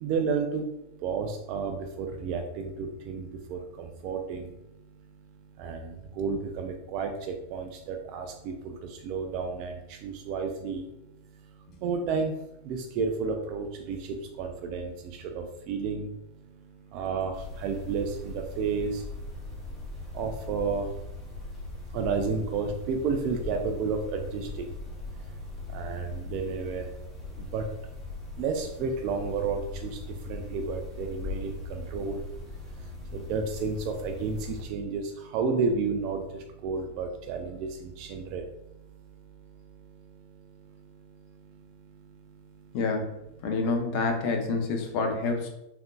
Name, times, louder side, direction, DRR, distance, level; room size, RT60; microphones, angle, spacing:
voice 1, 0.0-0.6 1.0-3.2 3.5-3.6 4.0-4.5 5.6-5.8 6.2-7.1 7.5-8.7 9.0-9.7 10.0-10.8 11.8-12.3 12.7-14.0 14.4-14.9 15.4-16.1 16.9-17.3 17.6-18.9 20.1-20.9 21.9-24.5 25.7-26.8 27.5-27.6 28.4-29.9 30.3-31.5 31.9-32.2 33.1-35.0 35.3-36.2 36.6-37.7 38.0-38.4, right 5 dB, 45° right, 4 dB, 0.3 m, -31 dB
sound 1, 17.3-34.6, left 3 dB, 15° left, 0.8 m, -40 dB
voice 2, 42.7-43.1 43.4-45.5, left 3 dB, 45° left, 3 dB, 0.6 m, -27 dB
3.6 x 2.5 x 2.3 m, 0.88 s
figure-of-eight pair, 90°, 0 cm